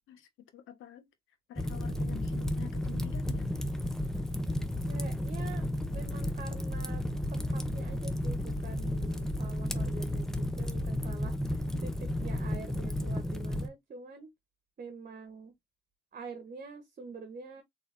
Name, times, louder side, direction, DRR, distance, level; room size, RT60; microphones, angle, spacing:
voice 1, 0.1-1.1 1.5-3.5, left 11 dB, 85° left, 1.3 m, -48 dB
Fire, 1.6-13.7, left 1 dB, ahead, 0.8 m, -33 dB
voice 2, 4.9-5.7 5.9-7.0 7.3-11.9 12.2-14.3 14.8-15.5 16.1-17.6, right 4 dB, 45° right, 1.1 m, -46 dB
4.0 x 3.5 x 3.4 m
cardioid pair, 90°, 20 cm